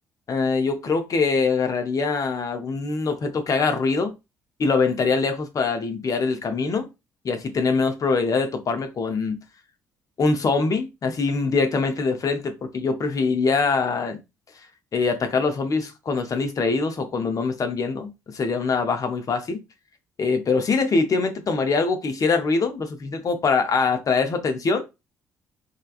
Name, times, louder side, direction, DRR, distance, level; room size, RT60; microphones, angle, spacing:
voice 1, 0.3-4.1 4.6-6.9 7.2-9.4 10.2-14.2 14.9-19.6 20.2-24.8, left 4 dB, 40° left, 0.6 m, -23 dB
3.2 x 2.3 x 2.4 m
hypercardioid pair, 50°, 9 cm